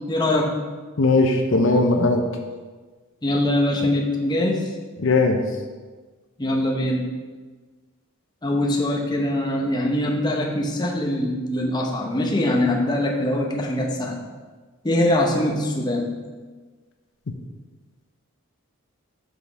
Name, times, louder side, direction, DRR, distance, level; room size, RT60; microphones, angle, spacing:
voice 1, 0.1-0.6 3.2-4.7 6.4-7.0 8.4-14.2 14.8-16.1, left 1 dB, 20° left, 0 dB, 0.8 m, -23 dB
voice 2, 1.0-2.2 5.0-5.4, left 2 dB, 60° left, 4 dB, 0.6 m, -18 dB
6.1 x 5.8 x 4.6 m, 1.4 s
head